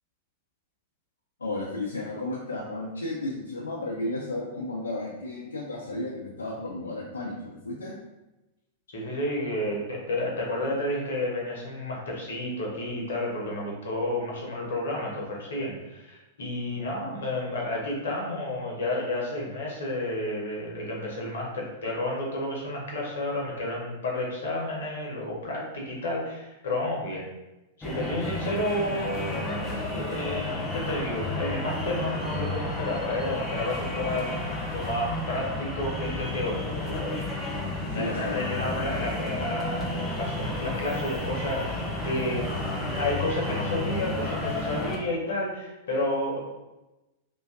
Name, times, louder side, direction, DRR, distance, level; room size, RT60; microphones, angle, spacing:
voice 1, 1.4-7.9 37.8-38.4, left 2 dB, 75° left, -5 dB, 0.4 m, -33 dB
voice 2, 8.9-27.3 27.8-37.3 37.9-46.4, left 1 dB, 60° left, -3 dB, 0.8 m, -31 dB
sound 1, 27.8-45.0, left 2 dB, 15° left, 0.5 m, -32 dB
2.5 x 2.2 x 2.3 m, 1.0 s
figure-of-eight pair, 95°, 0 cm